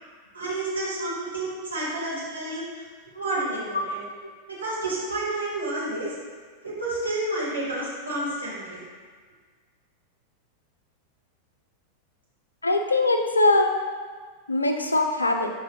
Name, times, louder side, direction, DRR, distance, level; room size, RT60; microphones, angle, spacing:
voice 1, 0.3-2.8 3.1-4.0 4.5-6.1 6.6-8.8, right 2 dB, 80° right, -7 dB, 1.3 m, -30 dB
voice 2, 12.6-13.7 14.5-15.5, left 2 dB, 80° left, 5 dB, 0.3 m, -22 dB
6.0 x 2.3 x 2.7 m, 1.5 s
figure-of-eight pair, 90°, 0 cm